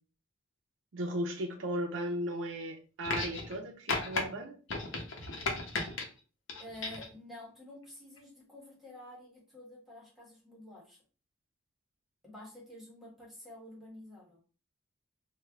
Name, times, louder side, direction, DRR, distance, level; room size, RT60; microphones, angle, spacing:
voice 1, 0.9-4.6, equal, 75° right, 3 dB, 0.5 m, -36 dB
sound 1, 3.0-3.6 3.9-4.2 4.7-6.1 6.5-7.1 8.2-8.3, left 3 dB, 85° left, 0.8 m, -35 dB
voice 2, 6.6-11.0 12.2-14.4, left 1 dB, ahead, -4 dB, 1.1 m, -50 dB
3.2 x 2.2 x 3.4 m, 0.37 s
head